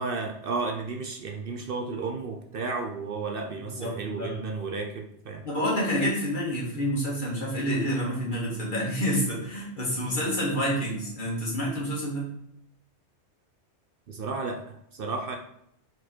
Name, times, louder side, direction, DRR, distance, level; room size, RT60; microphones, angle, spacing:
voice 1, 0.0-5.4 14.1-15.4, right 4 dB, 60° right, 3 dB, 0.8 m, -33 dB
voice 2, 3.6-4.4 5.4-12.3, equal, 45° left, -4 dB, 2.1 m, -28 dB
4.7 x 4.7 x 4.4 m, 0.75 s
omnidirectional pair, 1.2 m